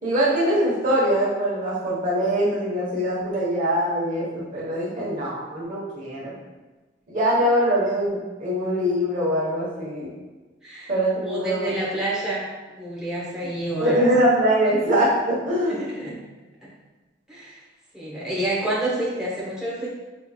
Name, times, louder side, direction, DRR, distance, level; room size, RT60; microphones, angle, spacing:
voice 1, 0.0-6.3 7.1-10.1 10.9-11.8 13.8-15.9, equal, 45° right, -7 dB, 1.1 m, -23 dB
voice 2, 11.3-14.1 15.6-16.2 16.6-16.7 17.3-17.6 17.9-19.9, right 1 dB, 5° right, -7 dB, 0.9 m, -28 dB
5.3 x 3.2 x 2.3 m, 1.2 s
head